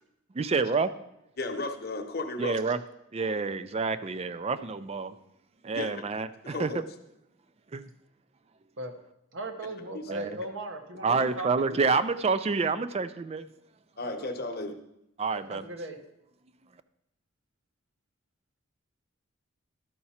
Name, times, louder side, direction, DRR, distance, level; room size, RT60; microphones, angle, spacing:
voice 1, 0.3-0.9 2.4-2.8 3.1-5.2 5.6-6.7 7.7-7.8 9.9-10.3 11.0-13.5 15.2-15.6, right 4 dB, 30° right, 13 dB, 0.4 m, -28 dB
voice 2, 1.4-2.6 5.7-5.9 6.4-6.8 9.9-10.0 11.1-11.3 14.0-14.8, left 2 dB, 50° left, 5 dB, 0.9 m, -34 dB
voice 3, 9.3-11.9 14.0-14.3 15.3-16.0, right 1 dB, 65° right, 6 dB, 1.0 m, -39 dB
12.5 x 5.8 x 4.2 m, 0.82 s
head